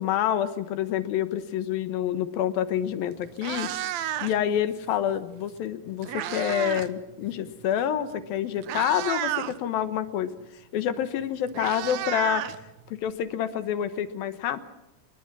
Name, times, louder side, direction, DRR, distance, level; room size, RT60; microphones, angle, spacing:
voice 1, 0.0-3.7 4.2-10.3 10.7-12.4 13.0-14.6, left 10 dB, 75° left, 11 dB, 2.9 m, -27 dB
Meow, 2.8-2.9 3.3-4.5 5.6-6.9 7.2-7.5 8.2-8.3 8.6-9.6 10.9-11.0 11.2-13.1, right 12 dB, 80° right, 1.6 m, -32 dB
29.5 x 20.5 x 6.1 m, 0.93 s
omnidirectional pair, 4.4 m